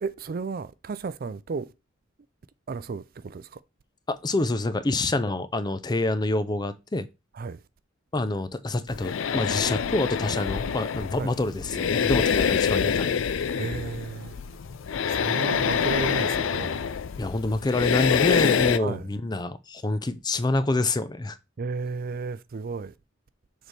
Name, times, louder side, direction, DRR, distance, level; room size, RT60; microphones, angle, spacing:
voice 1, 0.0-1.7 2.7-3.4 7.4-7.6 11.2-11.3 13.6-14.3 15.2-16.8 18.8-19.0 21.6-22.9, right 4 dB, 50° right, 0.4 m, -33 dB
voice 2, 4.1-7.1 8.1-13.1 17.2-21.4, left 2 dB, 20° left, 0.5 m, -27 dB
sound 1, 8.9-18.8, left 7 dB, 80° left, 0.5 m, -26 dB
6.6 x 4.5 x 3.3 m
head